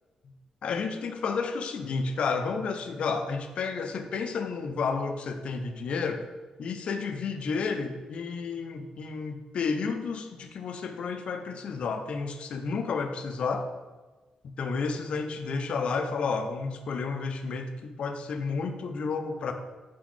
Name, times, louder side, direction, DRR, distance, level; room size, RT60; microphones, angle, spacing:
voice 1, 0.6-6.2 6.6-13.7 14.6-19.5, left 4 dB, 55° left, 7 dB, 0.4 m, -31 dB
4.0 x 3.9 x 3.1 m, 1.3 s
cardioid pair, 130°, 2 cm